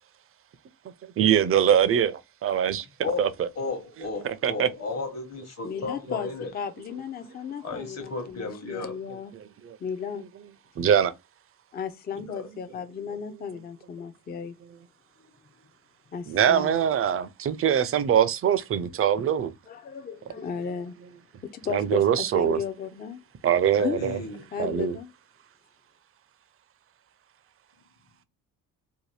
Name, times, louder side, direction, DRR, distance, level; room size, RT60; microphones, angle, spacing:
voice 1, 1.2-3.5 4.2-4.7 9.6-9.8 10.8-11.1 16.3-19.5 21.7-22.6 23.4-24.2 24.6-25.0, right 9 dB, 40° right, 0.4 m, -23 dB
voice 2, 3.0-6.5 7.6-9.0 12.1-12.5 23.8-24.4, left 3 dB, 45° left, 1.1 m, -34 dB
voice 3, 5.6-9.3 9.8-10.3 11.7-14.6 16.1-16.7 19.7-21.0 21.4-23.2 23.8-24.0 24.5-25.1, left 7 dB, 25° left, 0.4 m, -35 dB
2.8 x 2.2 x 3.2 m
cardioid pair, 90°, 38 cm